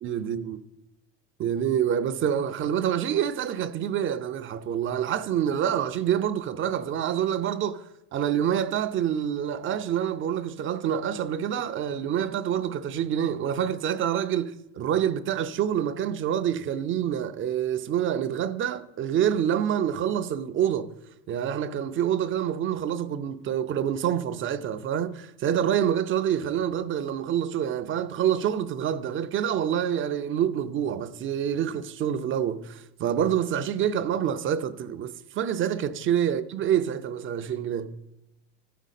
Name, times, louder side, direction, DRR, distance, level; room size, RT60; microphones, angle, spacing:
voice 1, 0.0-0.6 1.4-7.8 8.1-20.9 21.3-37.9, right 9 dB, 35° right, 0.5 m, -27 dB
13.0 x 5.1 x 4.2 m
cardioid pair, 125°, 34 cm